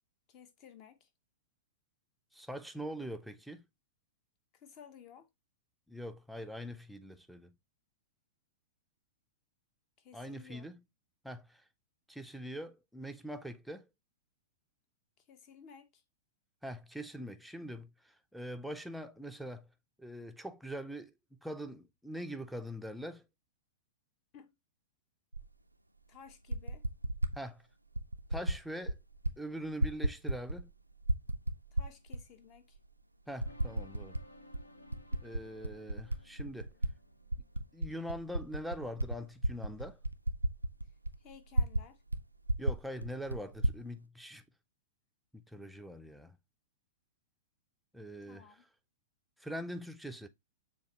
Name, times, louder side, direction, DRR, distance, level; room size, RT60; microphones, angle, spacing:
voice 1, 0.3-1.1 4.5-5.3 10.0-10.6 15.3-16.0 24.3-24.5 26.1-26.9 31.7-32.8 35.1-35.3 41.2-42.0 48.3-48.6, left 7 dB, 35° left, 0.8 m, -55 dB
voice 2, 2.3-3.6 5.9-7.5 10.1-10.8 11.2-11.6 12.1-13.9 16.6-19.7 20.0-23.2 27.3-27.6 28.3-29.0 29.4-30.7 33.3-34.2 35.2-36.7 37.7-40.0 42.6-44.4 45.3-46.4 47.9-48.6 49.4-50.3, equal, ahead, 0.4 m, -43 dB
Typing, 25.3-25.5 26.3-27.4 27.9-28.6 28.8-29.4 29.6-30.7 31.0-32.2 32.7-32.8 33.4-34.2 34.5-36.9 37.3-41.9 42.1-42.2 42.5-43.8, right 1 dB, 90° right, 0.3 m, -33 dB
sound 1, 33.4-38.4, left 1 dB, 80° left, 0.7 m, -58 dB
6.8 x 2.3 x 2.9 m
figure-of-eight pair, 105°, 0 cm